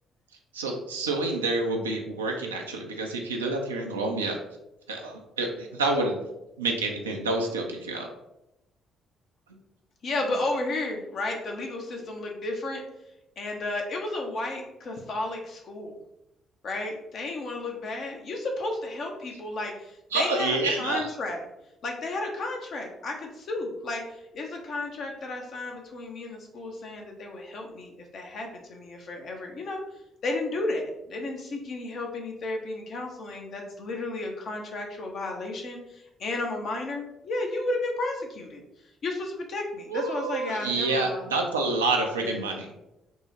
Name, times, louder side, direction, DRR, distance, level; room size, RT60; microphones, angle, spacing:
voice 1, 0.5-4.4 4.9-6.2 6.6-8.1 20.1-21.1 39.9-42.7, right 3 dB, 90° right, 2 dB, 0.3 m, -28 dB
voice 2, 10.0-12.8 13.4-16.0 16.6-21.4 21.8-29.8 30.2-38.6 39.0-41.2 42.2-42.4, left 2 dB, 55° left, 2 dB, 0.6 m, -33 dB
3.5 x 2.0 x 2.9 m, 0.90 s
hypercardioid pair, 45°, 0 cm